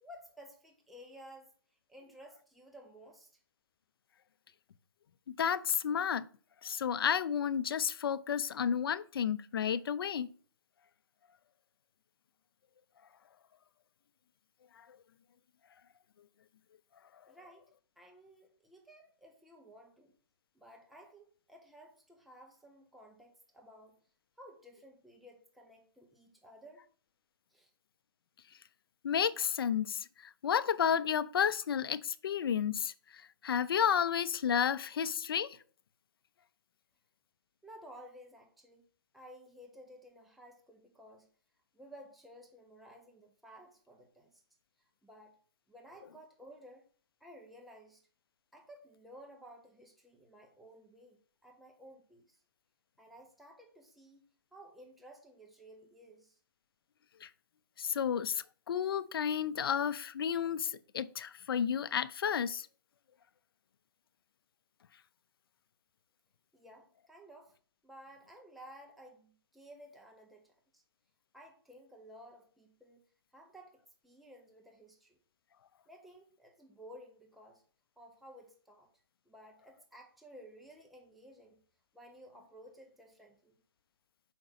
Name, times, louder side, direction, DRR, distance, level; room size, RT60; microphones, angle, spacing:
voice 1, 0.0-1.5 1.9-3.3 17.3-20.1 20.5-24.0 24.4-26.8 27.5-27.7 37.6-38.8 39.1-41.3 41.7-44.3 45.0-45.4 45.7-46.9 47.2-48.0 48.5-52.4 53.0-56.4 66.5-67.5 67.8-70.8 71.3-73.0 73.3-75.2 75.9-77.6 78.0-78.9 79.3-81.6 81.9-83.5, equal, ahead, 0.8 m, -55 dB
voice 2, 5.4-6.2 6.6-10.3 29.0-35.6 57.2-57.3 57.8-62.7, left 8 dB, 75° left, 0.5 m, -32 dB
5.9 x 5.1 x 4.0 m
hypercardioid pair, 150°, 12 cm